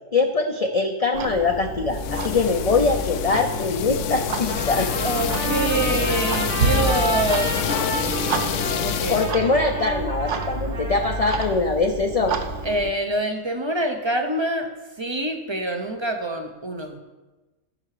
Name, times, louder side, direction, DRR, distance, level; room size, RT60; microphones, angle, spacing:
voice 1, 0.1-4.9 9.1-12.3, left 3 dB, 40° left, 3 dB, 0.6 m, -22 dB
Clock, 1.1-12.9, right 2 dB, 65° right, 1.1 m, -29 dB
sound 1, 1.9-9.3, left 10 dB, 70° left, 0.9 m, -27 dB
Trumpet, 4.5-11.5, right 2 dB, 85° right, 2.2 m, -31 dB
voice 2, 5.0-7.6 8.8-9.6 12.6-14.7 15.0-17.0, right 1 dB, 25° right, 6 dB, 0.7 m, -26 dB
16.0 x 5.7 x 4.9 m, 1.2 s
omnidirectional pair, 1.4 m